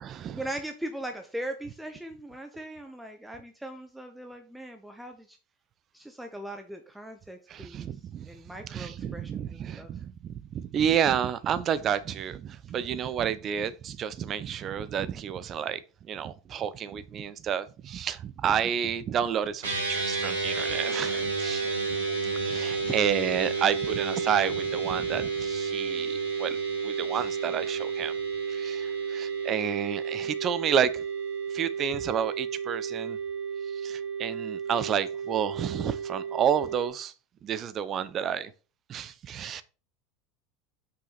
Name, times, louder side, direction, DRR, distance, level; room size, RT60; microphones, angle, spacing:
voice 1, 0.3-5.4 5.9-7.9 8.2-9.9, right 1 dB, 5° right, 0.9 m, -39 dB
voice 2, 7.5-8.3 8.7-15.8 16.1-21.7 22.4-26.6 26.8-28.1 28.5-31.0 31.5-33.2 33.7-37.1 37.4-38.5 38.9-39.6, right 8 dB, 35° right, 0.7 m, -30 dB
sound 1, 19.6-36.9, right 5 dB, 70° right, 2.3 m, -31 dB
5.8 x 4.9 x 4.1 m
figure-of-eight pair, 80°, 0 cm